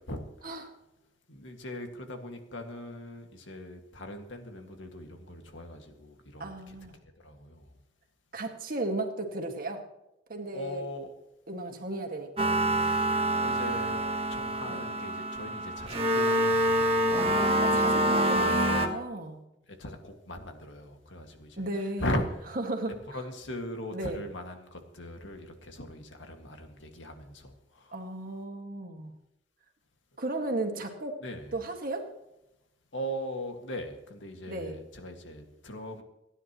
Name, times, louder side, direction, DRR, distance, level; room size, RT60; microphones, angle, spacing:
voice 1, 1.3-6.8 7.2-7.6 10.5-11.1 13.4-14.0 14.3-17.1 19.8-21.6 22.0-22.3 23.1-27.5 27.9-28.0 31.2-31.5 32.9-36.0, equal, 85° left, 4 dB, 2.0 m, -39 dB
voice 2, 6.4-7.0 8.3-9.8 10.3-10.9 11.5-12.5 14.6-14.9 17.2-19.4 21.6-22.2 22.5-23.3 23.9-24.2 27.9-29.1 30.2-31.1 31.5-32.1 34.5-34.8, right 2 dB, 50° right, 3 dB, 1.9 m, -35 dB
sound 1, 12.4-18.9, right 1 dB, 30° right, 1.3 m, -26 dB
29.0 x 10.0 x 3.1 m, 0.90 s
head